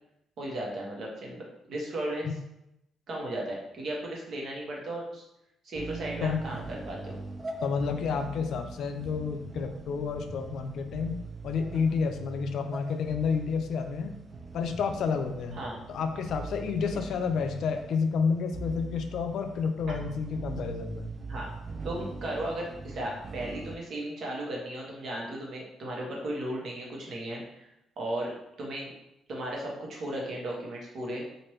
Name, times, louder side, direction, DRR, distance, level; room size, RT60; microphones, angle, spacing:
voice 1, 0.4-2.3 3.1-5.2 5.6-7.2 15.5-15.7 21.3-21.5 21.8-27.7 28.0-28.9 29.3-31.2, right 1 dB, 60° right, -2 dB, 1.0 m, -35 dB
sound 1, 5.8-23.7, right 3 dB, 35° right, 0.4 m, -42 dB
voice 2, 7.6-11.2 11.4-14.1 14.5-15.6 15.9-21.1, left 5 dB, 70° left, 6 dB, 0.4 m, -30 dB
3.1 x 2.5 x 3.0 m, 0.85 s
cardioid pair, 90°, 0 cm